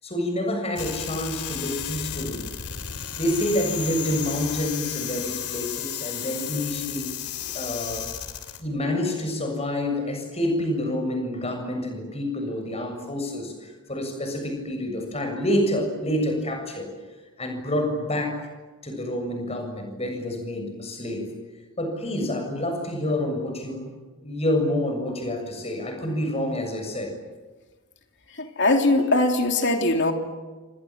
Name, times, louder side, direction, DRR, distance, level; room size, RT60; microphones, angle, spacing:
voice 1, 0.0-2.5 3.2-7.1 7.5-8.1 8.6-16.9 17.4-18.5 18.8-21.3 21.8-23.9 24.2-27.1, left 1 dB, 30° left, 4 dB, 7.3 m, -28 dB
sound 1, 0.8-8.6, left 9 dB, 85° left, 3.2 m, -33 dB
voice 2, 28.3-30.1, left 2 dB, 55° left, 4 dB, 3.1 m, -21 dB
29.5 x 26.5 x 7.6 m, 1.3 s
head